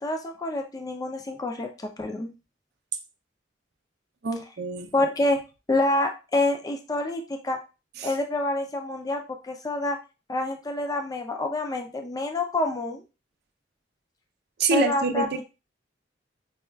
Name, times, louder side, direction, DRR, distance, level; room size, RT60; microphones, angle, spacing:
voice 1, 0.0-2.3 4.9-5.4 5.7-7.6 8.0-10.0 10.3-13.0 14.7-15.3, left 2 dB, 20° left, 4 dB, 0.4 m, -27 dB
voice 2, 4.2-4.9 8.0-8.1 14.6-15.4, right 3 dB, 55° right, 5 dB, 0.5 m, -26 dB
5.4 x 2.3 x 2.2 m, 0.30 s
head